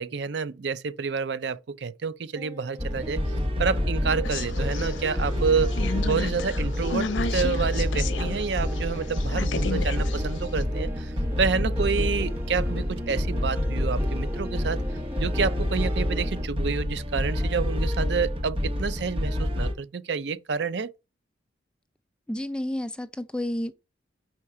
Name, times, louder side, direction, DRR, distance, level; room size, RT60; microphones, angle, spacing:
voice 1, 0.0-3.2 3.6-5.7 6.0-14.8 15.2-20.9, right 5 dB, 65° right, 0.5 m, -29 dB
sound 1, 2.4-16.5, equal, 15° right, 1.1 m, -40 dB
sound 2, 2.8-19.7, left 1 dB, 30° right, 1.0 m, -28 dB
sound 3, 4.2-8.4 8.7-10.6, left 4 dB, 90° left, 0.7 m, -33 dB
voice 2, 22.3-23.7, left 1 dB, 5° left, 0.3 m, -30 dB
4.7 x 4.3 x 4.8 m
head